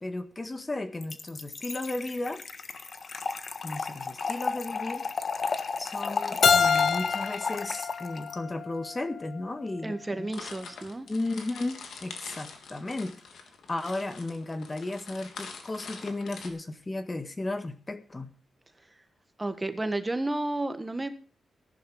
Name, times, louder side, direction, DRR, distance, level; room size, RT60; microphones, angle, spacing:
voice 1, 0.0-2.4 3.6-5.0 5.8-10.3 11.1-13.1 13.7-18.3, left 2 dB, 25° left, 9 dB, 1.6 m, -34 dB
Trickle dribble / Fill (with liquid), 1.0-8.4, left 5 dB, 50° left, 1.5 m, -33 dB
Keyboard (musical), 6.4-9.2, left 6 dB, 65° left, 0.6 m, -26 dB
voice 2, 9.8-11.1 19.4-21.1, right 2 dB, 20° right, 9 dB, 1.7 m, -31 dB
sound 1, 10.3-16.5, left 5 dB, 85° left, 3.1 m, -44 dB
14.5 x 11.0 x 4.9 m, 0.39 s
cardioid pair, 90°, 0 cm